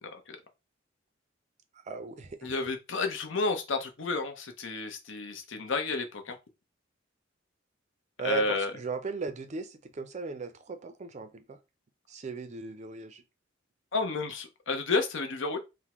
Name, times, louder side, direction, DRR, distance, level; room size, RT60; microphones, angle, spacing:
voice 1, 0.0-0.4 2.4-6.4 8.2-8.7 13.9-15.6, left 3 dB, 70° left, 0.7 m, -31 dB
voice 2, 1.9-2.5 8.2-11.6 12.1-13.2, right 4 dB, 35° right, 0.4 m, -37 dB
3.4 x 2.0 x 2.9 m
head